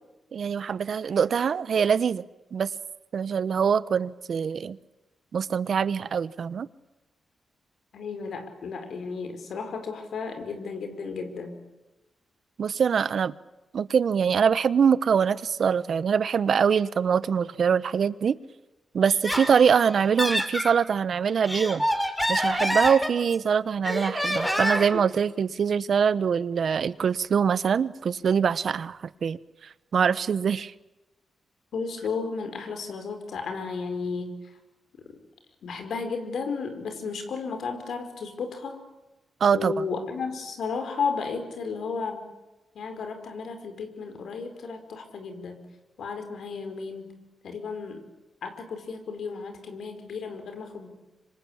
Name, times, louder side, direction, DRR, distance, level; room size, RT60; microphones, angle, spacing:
voice 1, 0.3-2.2 2.5-2.7 3.1-4.8 5.3-6.7 12.6-13.3 13.7-18.4 18.9-21.8 22.3-30.7 39.4-39.8, right 7 dB, 65° right, 17 dB, 0.9 m, -24 dB
voice 2, 7.9-11.5 31.7-34.4 35.6-38.8 39.5-42.3 42.7-45.6 46.0-47.2 47.4-48.0 48.4-50.9, left 5 dB, 75° left, 7 dB, 4.8 m, -33 dB
Laughter, 19.0-20.7 21.3-23.5 23.8-25.0, equal, 5° left, 4.2 m, -27 dB
26.0 x 25.5 x 8.7 m, 1.0 s
cardioid pair, 80°, 0 cm